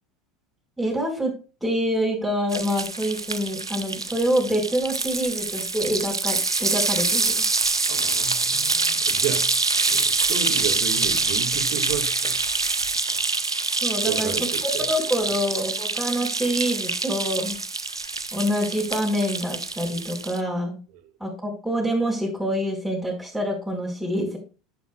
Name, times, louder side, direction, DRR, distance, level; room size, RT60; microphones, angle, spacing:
voice 1, 0.8-1.3 1.6-7.4 13.8-14.3 14.9-17.6 18.3-20.7 21.2-24.4, equal, ahead, 5.0 m, -26 dB
sound 1, 2.5-20.4, right 3 dB, 85° right, 0.6 m, -25 dB
voice 2, 7.9-9.6 9.9-12.4 14.0-14.9 15.3-15.4, right 9 dB, 55° right, 1.9 m, -32 dB
11.0 x 9.2 x 2.3 m
figure-of-eight pair, 75°, 2 cm